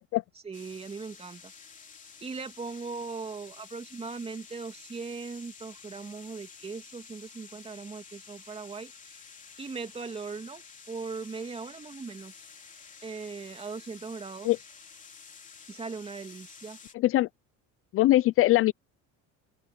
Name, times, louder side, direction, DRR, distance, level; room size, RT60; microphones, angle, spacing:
voice 1, 0.4-1.5 2.2-9.3 9.6-12.5 13.0-14.5 15.7-16.8, right 4 dB, 15° right, 2.3 m, -39 dB
sound 1, 0.5-16.9, left 6 dB, 20° left, 3.2 m, -51 dB
voice 2, 16.9-17.3 17.9-18.7, left 16 dB, 40° left, 0.4 m, -21 dB
open air
cardioid pair, 150°, 34 cm